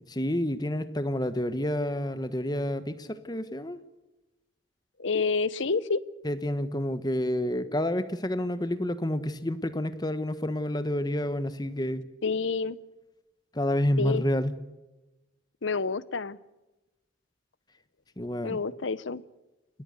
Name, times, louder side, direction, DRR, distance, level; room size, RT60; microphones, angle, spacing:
voice 1, 0.0-3.8 6.2-12.1 13.5-14.6 18.2-18.6, left 1 dB, 20° left, 12 dB, 1.2 m, -29 dB
voice 2, 5.0-6.0 12.2-12.8 14.0-14.2 15.6-16.4 18.4-19.2, left 4 dB, 70° left, 18 dB, 0.8 m, -28 dB
29.5 x 13.5 x 8.2 m, 1.0 s
head